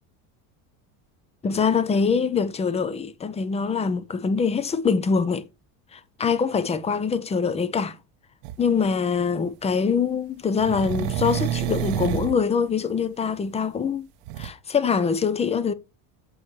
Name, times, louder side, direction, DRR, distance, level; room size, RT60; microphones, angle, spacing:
voice 1, 1.4-5.5 5.9-8.0 8.6-14.1 14.4-15.7, left 5 dB, 15° left, 0.4 m, -24 dB
sound 1, 8.4-8.6 10.6-12.4 14.3-14.5, right 13 dB, 65° right, 0.7 m, -28 dB
7.8 x 4.1 x 3.1 m
supercardioid pair, 115°, 45 cm